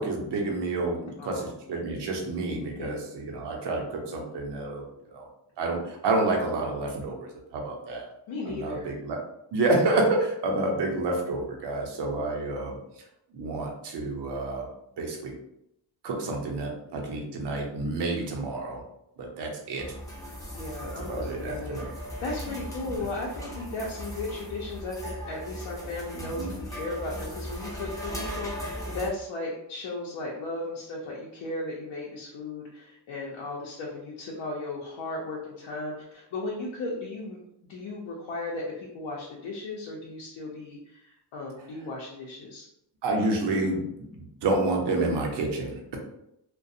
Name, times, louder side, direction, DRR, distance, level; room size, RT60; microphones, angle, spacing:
voice 1, 0.0-4.8 5.1-5.2 5.6-8.0 8.5-9.2 9.5-12.8 13.3-14.7 15.0-15.3 16.0-18.8 19.2-19.8 21.1-21.9 26.1-26.5 43.0-43.8 44.1-46.0, right 2 dB, 65° right, 1 dB, 0.7 m, -29 dB
voice 2, 1.2-1.5 2.8-3.0 8.3-9.0 20.5-21.9 22.2-37.4 37.7-42.7, left 2 dB, 75° left, -3 dB, 0.6 m, -36 dB
sound 1, 19.8-29.1, equal, 10° left, 0.5 m, -38 dB
2.4 x 2.2 x 2.6 m, 0.80 s
cardioid pair, 130°, 45 cm